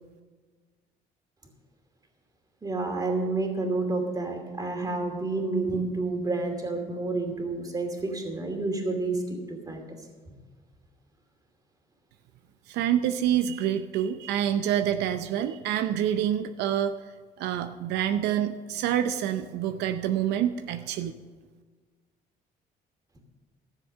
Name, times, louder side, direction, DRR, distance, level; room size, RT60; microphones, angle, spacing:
voice 1, 2.6-9.2 9.5-9.8, right 3 dB, 20° right, 3 dB, 2.6 m, -29 dB
voice 2, 12.7-17.0 17.4-21.2, right 10 dB, 85° right, 9 dB, 0.6 m, -27 dB
13.5 x 7.3 x 6.6 m, 1.4 s
cardioid pair, 110°, 17 cm